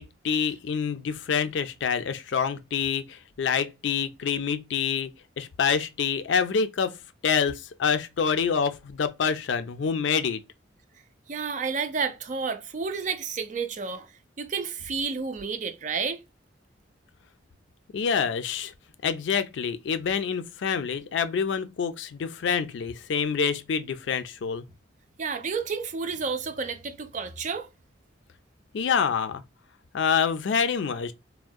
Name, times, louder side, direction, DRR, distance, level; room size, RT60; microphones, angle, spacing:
voice 1, 0.0-5.1 5.4-6.9 7.2-10.4 17.9-18.7 19.0-24.7 28.7-29.4 29.9-31.1, left 6 dB, 70° left, 0.4 m, -27 dB
voice 2, 11.3-14.1 14.4-16.2 25.2-27.7, right 5 dB, 40° right, 0.4 m, -31 dB
3.5 x 2.1 x 2.2 m
head